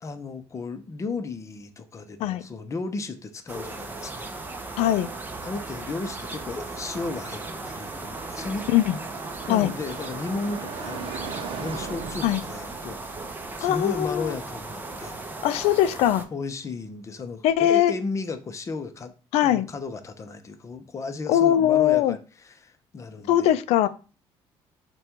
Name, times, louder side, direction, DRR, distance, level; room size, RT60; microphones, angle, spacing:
voice 1, 0.0-4.3 5.4-8.7 9.5-13.0 13.6-15.2 16.3-19.1 19.4-23.5, left 3 dB, 30° left, 0.6 m, -34 dB
sound 1, 3.5-16.2, right 3 dB, 20° right, 0.6 m, -37 dB
Car passing by, 4.1-16.0, right 5 dB, 55° right, 0.7 m, -41 dB
voice 2, 4.8-5.1 8.7-9.0 9.5-9.7 12.2-12.4 13.6-14.3 15.4-16.2 17.4-17.9 19.3-19.7 21.3-22.2 23.3-23.9, left 12 dB, 85° left, 0.4 m, -21 dB
5.0 x 2.3 x 4.4 m
cardioid pair, 120°, 10 cm